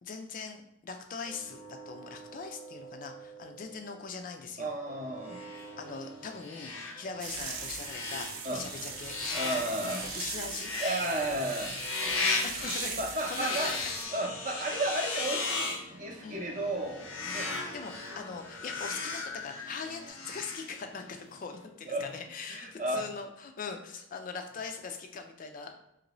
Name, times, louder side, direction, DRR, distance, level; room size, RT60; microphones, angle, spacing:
voice 1, 0.0-4.7 5.8-9.6 10.0-10.7 12.4-13.9 16.2-16.4 17.2-17.4 17.7-25.7, left 5 dB, 40° left, 5 dB, 0.3 m, -41 dB
sound 1, 1.2-4.3 4.9-13.2 13.7-16.2 16.9-20.1, right 2 dB, ahead, 0.7 m, -52 dB
voice 2, 4.6-5.4 8.4-8.6 9.3-10.0 10.8-11.7 13.0-13.7 14.1-17.6 21.9-22.1 22.5-23.1, right 1 dB, 40° right, 1 dB, 0.6 m, -33 dB
sound 2, 5.3-21.2, left 3 dB, 85° left, 0.6 m, -37 dB
sound 3, 7.2-14.1, right 6 dB, 90° right, 0.5 m, -40 dB
3.0 x 2.6 x 3.0 m, 0.83 s
head